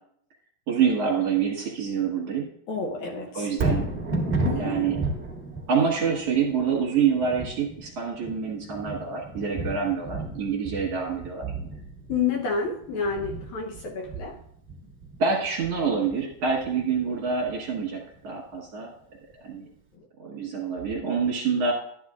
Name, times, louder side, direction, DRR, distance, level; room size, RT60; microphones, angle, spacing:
voice 1, 0.7-2.5 3.3-3.8 4.5-5.0 5.7-11.5 15.2-18.9 19.4-19.7 20.2-21.7, right 6 dB, 55° right, -2 dB, 2.0 m, -26 dB
voice 2, 2.7-3.5 4.4-4.9 12.1-14.4 19.9-20.1, left 5 dB, 70° left, 0 dB, 2.0 m, -29 dB
Thunder, 3.5-17.7 18.2-18.3, right 3 dB, 30° right, 1.1 m, -33 dB
12.5 x 9.8 x 2.4 m, 0.68 s
omnidirectional pair, 4.0 m